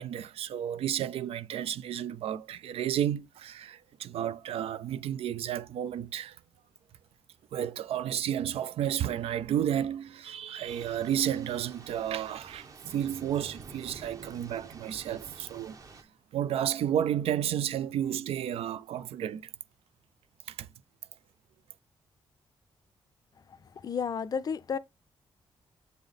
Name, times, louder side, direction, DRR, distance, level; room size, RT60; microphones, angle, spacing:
voice 1, 0.0-6.4 7.5-15.8 16.3-19.5 20.5-20.7, right 10 dB, 80° right, 0.4 m, -32 dB
Thunder / Rain, 10.7-16.0, right 4 dB, 35° right, 0.8 m, -49 dB
voice 2, 23.8-24.8, left 6 dB, 40° left, 0.4 m, -31 dB
7.2 x 3.5 x 3.7 m
wide cardioid pair, 135°, 10 cm